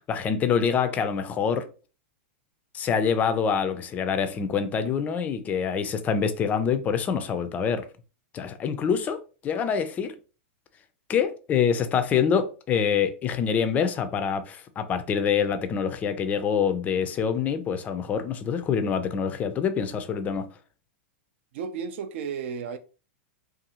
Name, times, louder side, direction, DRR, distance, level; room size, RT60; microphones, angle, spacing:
voice 1, 0.1-1.6 2.7-7.9 8.3-10.1 11.1-20.5, left 7 dB, 20° left, 0.3 m, -26 dB
voice 2, 21.5-22.8, right 6 dB, 65° right, 0.4 m, -33 dB
2.6 x 2.4 x 2.8 m
hypercardioid pair, 135°, 7 cm